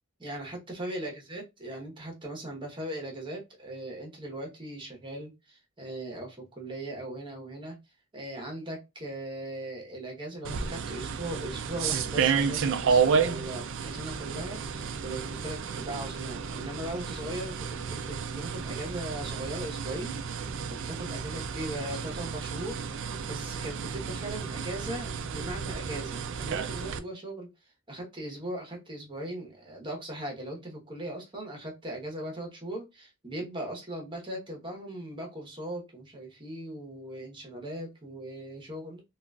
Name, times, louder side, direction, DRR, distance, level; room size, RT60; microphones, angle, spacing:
voice 1, 0.2-7.7 8.1-27.5 27.9-39.0, right 1 dB, 20° right, 0 dB, 1.0 m, -39 dB
sound 1, 10.4-27.0, right 6 dB, 55° right, 0.4 m, -31 dB
3.7 x 2.4 x 2.3 m, 0.23 s
head